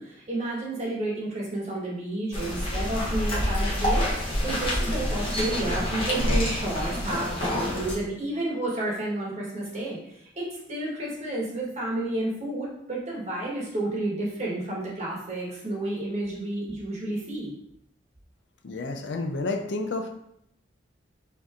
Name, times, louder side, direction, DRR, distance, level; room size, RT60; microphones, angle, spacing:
voice 1, 0.0-10.0 10.4-17.5, right 1 dB, 35° right, -4 dB, 1.2 m, -31 dB
sound 1, 2.3-7.9, equal, 25° left, 0.9 m, -27 dB
voice 2, 18.6-20.1, left 3 dB, 65° left, 5 dB, 0.4 m, -30 dB
5.4 x 2.8 x 2.4 m, 0.75 s
head